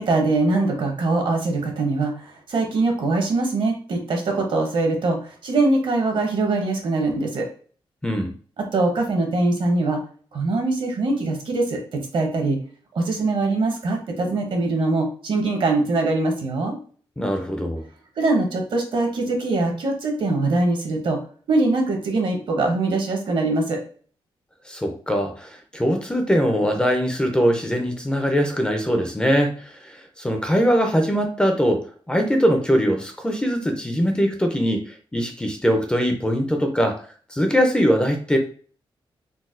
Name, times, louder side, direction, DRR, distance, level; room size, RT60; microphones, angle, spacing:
voice 1, 0.0-7.5 8.6-10.0 10.3-12.6 12.9-16.8 18.2-21.2 21.5-23.8, right 2 dB, 65° right, 3 dB, 0.9 m, -22 dB
voice 2, 8.0-8.3 17.2-17.8 24.7-37.0 37.3-38.4, equal, 10° left, 4 dB, 0.4 m, -22 dB
3.9 x 2.2 x 2.5 m, 0.44 s
wide cardioid pair, 145°, 10 cm